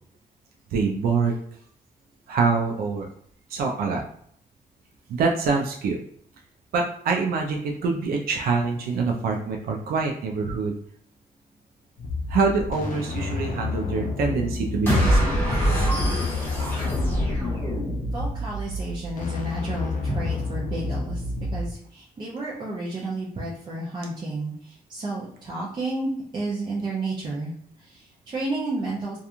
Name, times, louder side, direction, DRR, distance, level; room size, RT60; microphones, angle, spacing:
voice 1, 0.7-1.3 2.3-3.1 3.5-4.0 5.1-6.0 6.7-10.7 12.3-15.2 15.7-15.8, right 4 dB, 85° right, 1 dB, 0.4 m, -25 dB
sound 1, 12.0-21.7, left 2 dB, 60° left, 0.4 m, -30 dB
sound 2, 14.9-18.2, equal, 15° left, 1.0 m, -24 dB
voice 2, 18.1-21.2 21.5-27.5 27.8-29.2, right 2 dB, 30° right, -6 dB, 0.5 m, -31 dB
2.8 x 2.3 x 2.4 m, 0.64 s
wide cardioid pair, 175°, 15 cm